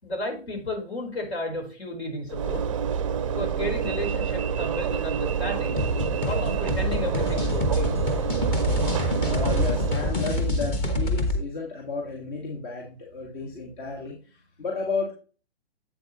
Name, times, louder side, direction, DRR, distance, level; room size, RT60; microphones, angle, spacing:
voice 1, 0.0-2.6 3.2-5.9 6.1-8.0, left 1 dB, 70° left, 3 dB, 4.2 m, -33 dB
Train / Engine / Alarm, 2.3-10.6, right 7 dB, 30° right, 0.5 m, -28 dB
sound 1, 5.8-11.4, left 2 dB, 15° left, 1.0 m, -26 dB
voice 2, 9.3-15.1, left 3 dB, 45° left, -1 dB, 1.9 m, -33 dB
8.1 x 7.7 x 3.0 m, 0.36 s
hypercardioid pair, 150°, 33 cm